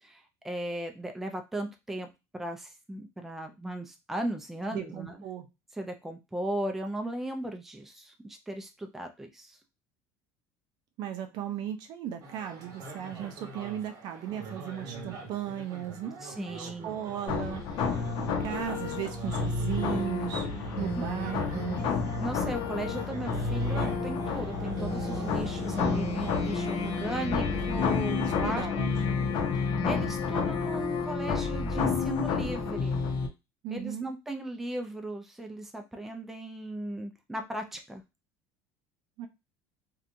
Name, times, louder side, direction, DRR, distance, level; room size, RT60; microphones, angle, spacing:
voice 1, 0.0-2.1 2.3-5.2 5.7-9.6 16.2-17.0 21.0-21.1 22.2-28.7 29.6-33.0 33.7-38.0, right 1 dB, 5° right, 4 dB, 0.4 m, -37 dB
voice 2, 4.7-5.5 11.0-17.7 18.2-20.5 20.8-21.9 28.1-28.9 33.6-34.1 39.2-39.3, right 10 dB, 65° right, 7 dB, 0.5 m, -36 dB
sound 1, 12.2-27.7, right 4 dB, 45° right, 1.0 m, -43 dB
sound 2, 17.3-33.3, left 5 dB, 60° left, 0.7 m, -30 dB
2.7 x 2.3 x 2.5 m, 0.24 s
cardioid pair, 120°, 8 cm